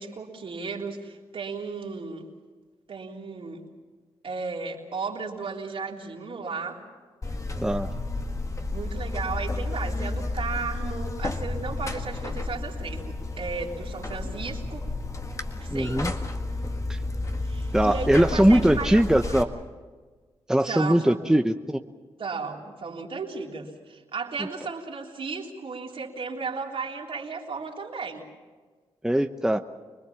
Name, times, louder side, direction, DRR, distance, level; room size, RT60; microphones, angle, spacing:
voice 1, 0.0-2.3 2.9-3.7 4.2-6.8 8.7-14.8 15.6-16.0 17.4-19.4 20.7-21.4 22.2-28.3, right 4 dB, 65° right, -1 dB, 3.6 m, -35 dB
Buzz, 7.2-19.4, left 2 dB, 30° left, 1.9 m, -31 dB
voice 2, 15.7-16.1 16.9-17.0 17.7-19.5 20.5-21.8 29.0-29.6, right 1 dB, 5° right, 6 dB, 0.9 m, -21 dB
25.5 x 20.0 x 7.1 m, 1.4 s
cardioid pair, 60°, 10 cm